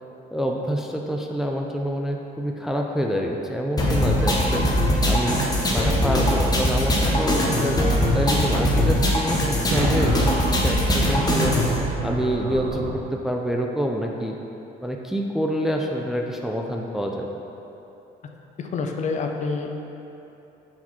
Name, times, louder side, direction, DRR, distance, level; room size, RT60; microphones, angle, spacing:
voice 1, 0.3-4.6 5.1-5.4 5.7-7.8 8.1-14.4 14.8-17.4, equal, ahead, 1 dB, 0.4 m, -27 dB
sound 1, 3.8-11.8, left 1 dB, 20° left, 1.0 m, -21 dB
sound 2, 9.7-12.9, right 4 dB, 75° right, 0.7 m, -29 dB
voice 2, 18.6-19.8, left 4 dB, 45° left, 3 dB, 0.5 m, -28 dB
6.0 x 4.4 x 4.1 m, 3.0 s
cardioid pair, 110°, 17 cm